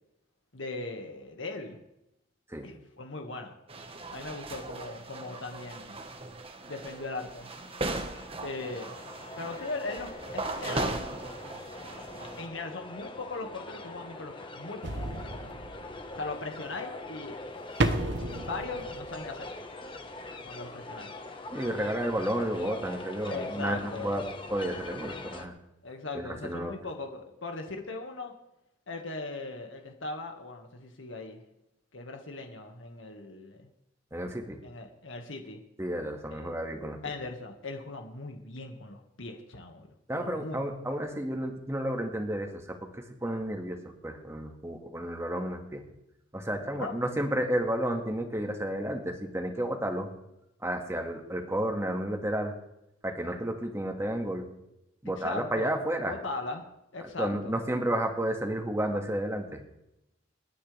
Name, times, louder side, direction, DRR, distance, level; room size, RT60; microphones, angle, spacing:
voice 1, 0.5-1.8 2.6-3.5 4.1-6.0 6.7-7.5 8.4-9.0 9.4-10.9 12.4-15.0 16.2-17.4 18.4-19.5 20.4-21.1 23.3-24.1 25.8-28.3 28.9-31.4 31.9-33.7 34.6-35.6 36.3-36.5 37.0-39.9 40.1-40.6 46.8-47.0 55.2-55.7 56.1-56.6 56.9-57.5, left 3 dB, 85° left, 4 dB, 1.9 m, -39 dB
sound 1, 3.7-12.5, right 2 dB, 30° right, 1.4 m, -38 dB
sound 2, 6.5-25.5, left 2 dB, 25° left, 1.4 m, -43 dB
sound 3, 14.8-16.3 17.8-19.7 20.1-20.2, right 2 dB, 65° right, 1.1 m, -32 dB
voice 2, 21.5-24.2 24.5-25.5 26.1-26.7 34.1-34.6 35.8-37.0 40.1-43.8 44.0-45.8 46.3-50.1 50.6-52.5 53.0-54.5 55.0-56.2 57.2-59.6, right 1 dB, 15° right, 3 dB, 2.0 m, -31 dB
29.5 x 10.0 x 3.5 m, 0.86 s
head